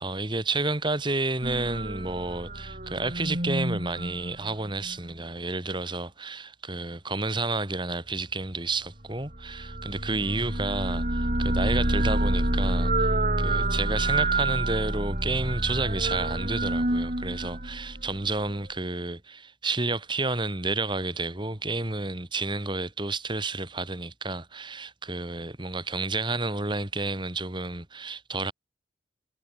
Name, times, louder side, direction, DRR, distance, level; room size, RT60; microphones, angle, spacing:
voice 1, 0.0-13.1 13.4-28.5, right 3 dB, 25° right, 2.5 m, -30 dB
sound 1, 1.4-5.0 9.3-18.5, right 1 dB, 40° right, 6.0 m, -28 dB
head